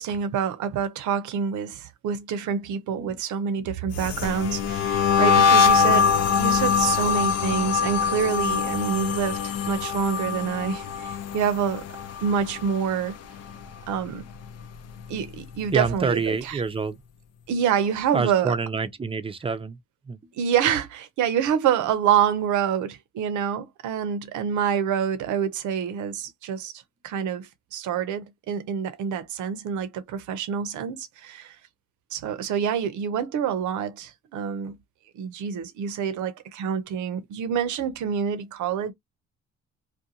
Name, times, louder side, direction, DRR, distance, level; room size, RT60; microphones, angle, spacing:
voice 1, 0.0-11.8 12.2-13.2 13.9-14.3 15.1-16.6 17.5-18.6 20.3-26.7 27.0-31.6 32.1-34.7 35.2-38.9, right 8 dB, 75° right, 0.7 m, -27 dB
sound 1, 3.9-13.1 13.4-13.8 14.1-15.7, left 6 dB, 55° left, 0.5 m, -23 dB
voice 2, 15.7-17.0 18.1-19.8 20.0-20.2, right 4 dB, 20° right, 0.5 m, -27 dB
2.5 x 2.2 x 2.7 m
cardioid pair, 90°, 30 cm